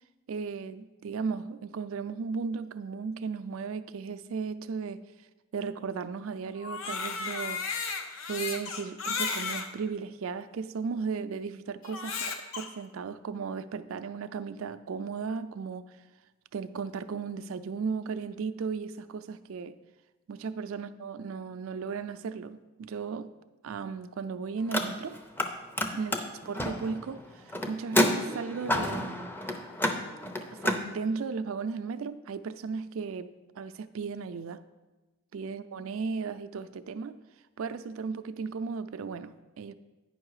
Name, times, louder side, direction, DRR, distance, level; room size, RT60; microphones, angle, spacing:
voice 1, 0.3-5.0 5.5-7.6 8.3-16.0 16.5-19.7 20.3-23.3 23.6-25.2 25.9-26.2 26.5-29.3 30.5-34.6 35.3-37.2 37.6-39.7, right 5 dB, 70° right, 12 dB, 0.4 m, -35 dB
Crying sobbing, 6.5-9.7 10.4-10.5 11.8-12.7, left 5 dB, 70° left, 0.8 m, -34 dB
Car, 24.6-25.5 25.7-30.8, left 1 dB, 10° left, 0.6 m, -30 dB
9.6 x 5.3 x 4.8 m, 1.1 s
head